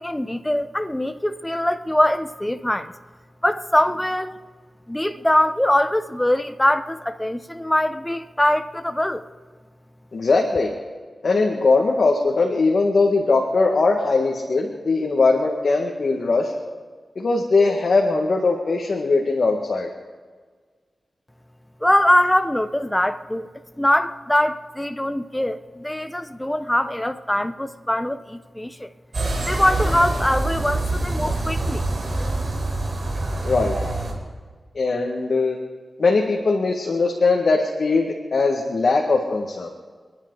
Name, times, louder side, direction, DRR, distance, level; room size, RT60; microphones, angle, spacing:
voice 1, 0.0-2.9 3.4-4.4 4.9-9.2 21.8-23.5 23.8-28.9 29.5-31.9, left 1 dB, 10° left, 1.0 m, -22 dB
voice 2, 10.1-10.7 11.2-16.5 17.2-19.9 33.4-33.8 34.8-35.6 36.0-39.7, left 3 dB, 70° left, 1.9 m, -20 dB
sound 1, 29.1-34.1, right 2 dB, 60° right, 4.4 m, -25 dB
28.5 x 10.5 x 4.0 m
cardioid pair, 60°, 0 cm